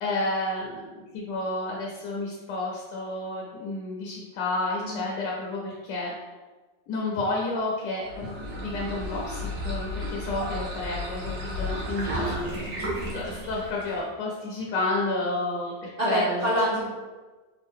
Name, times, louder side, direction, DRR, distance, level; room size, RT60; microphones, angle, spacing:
voice 1, 0.0-0.9 1.1-6.1 6.9-12.7 13.1-16.5, left 2 dB, 75° left, -3 dB, 1.2 m, -31 dB
sound 1, 8.0-14.1, left 1 dB, 50° right, 0.9 m, -33 dB
voice 2, 12.1-12.7 16.0-16.9, equal, 85° right, -8 dB, 0.4 m, -27 dB
3.5 x 2.4 x 3.5 m, 1.3 s
omnidirectional pair, 2.0 m